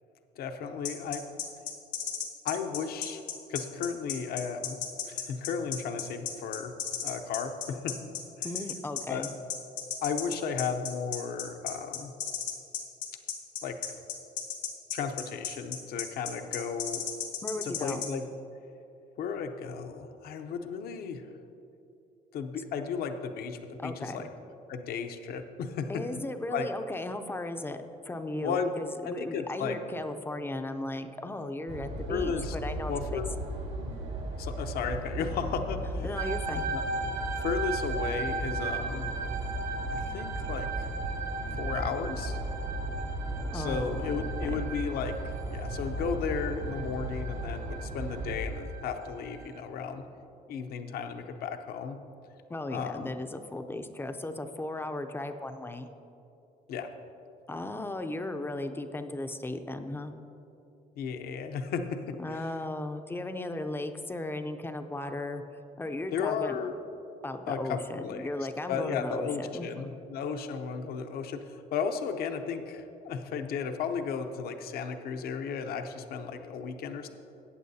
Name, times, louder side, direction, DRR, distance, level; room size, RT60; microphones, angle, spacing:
voice 1, 0.4-1.2 2.4-3.2 3.5-4.8 5.1-6.7 7.0-7.9 8.4-8.5 9.1-9.3 10.0-12.1 13.6-13.7 14.9-17.0 17.6-18.2 19.2-21.2 22.3-24.3 24.7-26.2 26.5-26.7 28.4-28.7 29.0-29.8 32.1-32.6 32.9-33.3 34.4-36.1 36.7-36.8 37.4-39.1 39.9-41.0 41.6-42.4 43.5-45.1 45.5-50.0 50.5-52.0 52.7-53.1 56.7-56.9 61.0-62.5 66.1-66.7 67.5-68.3 68.7-77.1, left 6 dB, 65° left, 7 dB, 0.7 m, -34 dB
sound 1, 0.8-18.1, left 9 dB, 85° left, 1.5 m, -34 dB
voice 2, 8.4-9.3 17.4-18.0 23.8-24.3 25.9-27.8 28.0-33.2 36.0-36.7 43.5-44.7 52.5-55.9 57.5-60.1 62.2-65.4 65.8-66.6 67.2-69.9, left 2 dB, 15° left, 8 dB, 0.5 m, -36 dB
sound 2, 31.7-48.4, right 1 dB, 80° right, 2.0 m, -36 dB
sound 3, 36.2-49.6, right 4 dB, 50° right, 1.0 m, -38 dB
15.0 x 8.6 x 2.7 m, 2.8 s
cardioid pair, 110°, 17 cm